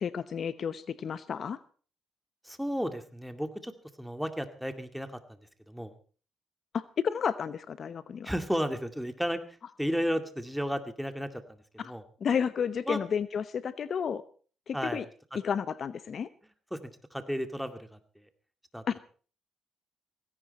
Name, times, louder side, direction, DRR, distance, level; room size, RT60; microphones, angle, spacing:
voice 1, 0.0-1.6 6.7-8.3 11.8-11.9 12.2-14.2 14.7-15.0 15.4-16.3 18.9-19.0, left 7 dB, 55° left, 14 dB, 0.9 m, -31 dB
voice 2, 2.4-3.7 4.0-5.2 5.7-5.9 8.2-9.4 9.8-12.0 12.9-13.0 14.7-15.0 15.3-15.4 16.7-18.0 18.7-18.8, equal, ahead, 9 dB, 2.2 m, -33 dB
17.0 x 16.5 x 4.2 m, 0.41 s
cardioid pair, 90°, 0 cm